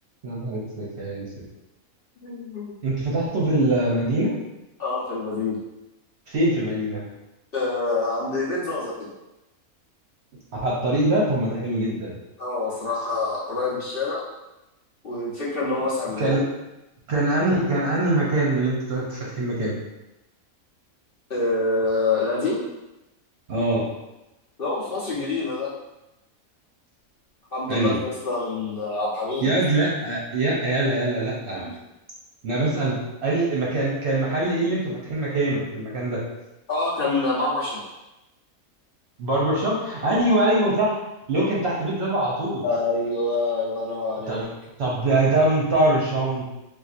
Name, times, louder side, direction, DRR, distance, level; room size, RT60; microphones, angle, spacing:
voice 1, 0.2-1.3 2.8-4.3 6.3-7.0 10.6-12.2 16.2-16.5 17.1-19.7 23.5-23.8 27.7-28.0 29.4-31.7 32.4-36.2 39.2-41.0 41.3-42.6 44.3-44.5 44.8-46.4, right 1 dB, 55° right, -5 dB, 0.9 m, -23 dB
voice 2, 2.2-2.7 4.8-5.6 7.5-9.1 12.4-14.2 15.0-16.4 21.3-22.6 24.6-25.7 27.5-29.5 31.5-31.7 36.7-37.8 42.6-44.4, left 3 dB, 50° left, -8 dB, 0.9 m, -26 dB
4.1 x 2.5 x 2.4 m, 0.97 s
omnidirectional pair, 1.5 m